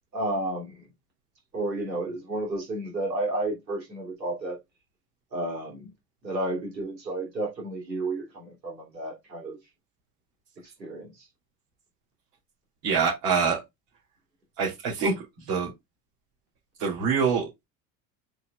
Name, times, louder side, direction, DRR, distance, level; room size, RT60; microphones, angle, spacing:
voice 1, 0.1-0.7 1.5-4.6 5.3-5.9 6.2-9.6 10.8-11.1, right 2 dB, 90° right, 3.2 m, -31 dB
voice 2, 12.8-13.6 14.6-15.7 16.8-17.6, right 5 dB, 60° right, 3.5 m, -25 dB
9.2 x 4.9 x 2.4 m
hypercardioid pair, 70°, 49 cm